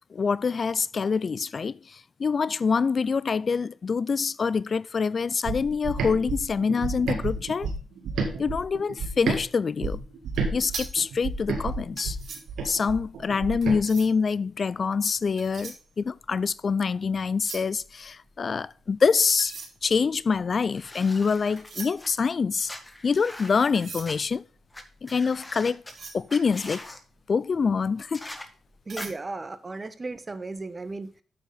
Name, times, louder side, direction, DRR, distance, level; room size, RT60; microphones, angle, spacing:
voice 1, 0.1-1.7 2.2-7.7 8.4-10.0 10.5-12.2 12.6-19.5 19.8-22.7 23.0-24.4 25.0-25.8 26.1-26.8 27.3-28.2, left 5 dB, 50° left, 0.4 m, -25 dB
sound 1, 5.4-9.4 9.8-13.8, right 4 dB, 80° right, 1.9 m, -31 dB
sound 2, 10.3-14.3 15.1-16.8 17.1-18.8 19.3-27.3 27.7-27.9 28.3-29.1, right 5 dB, 65° right, 3.3 m, -43 dB
sound 3, 20.7-22.1 22.7-24.1 24.7-24.8 25.1-25.9 26.3-27.0 28.1-28.5 29.0-29.1, left 1 dB, 20° left, 1.8 m, -41 dB
voice 2, 28.9-31.1, right 3 dB, 35° right, 1.2 m, -35 dB
8.7 x 7.8 x 3.9 m
supercardioid pair, 50°, 0 cm